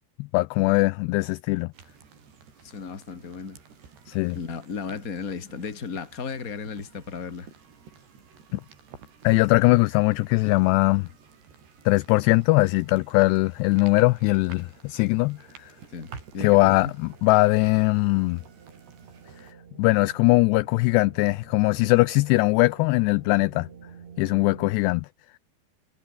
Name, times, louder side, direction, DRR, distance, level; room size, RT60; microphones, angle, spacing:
voice 1, 0.2-1.7 4.1-4.4 8.5-8.6 9.2-11.1 11.9-15.7 16.4-18.4 19.8-23.7 24.2-25.1, left 22 dB, 85° left, 2.5 m, -21 dB
sound 1, 1.7-19.5, right 6 dB, 65° right, 7.3 m, -50 dB
voice 2, 2.6-3.6 4.3-7.5 15.9-16.9, left 5 dB, 25° left, 2.2 m, -35 dB
sound 2, 13.5-24.8, right 6 dB, 40° right, 3.6 m, -51 dB
omnidirectional pair, 5.2 m